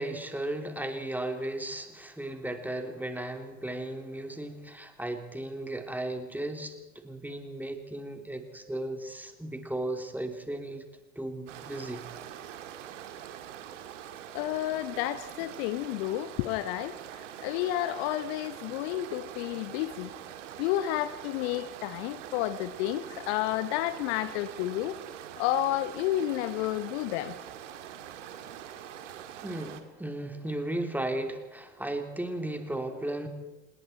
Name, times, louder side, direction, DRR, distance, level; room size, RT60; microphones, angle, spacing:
voice 1, 0.0-10.8 11.1-12.0 29.4-33.3, right 1 dB, 5° right, 3.4 m, -35 dB
sound 1, 11.5-29.8, right 10 dB, 70° right, 2.2 m, -44 dB
voice 2, 14.3-20.1 20.6-25.0 25.4-27.4, left 13 dB, 60° left, 1.2 m, -31 dB
27.5 x 21.0 x 4.5 m
figure-of-eight pair, 65°, 38 cm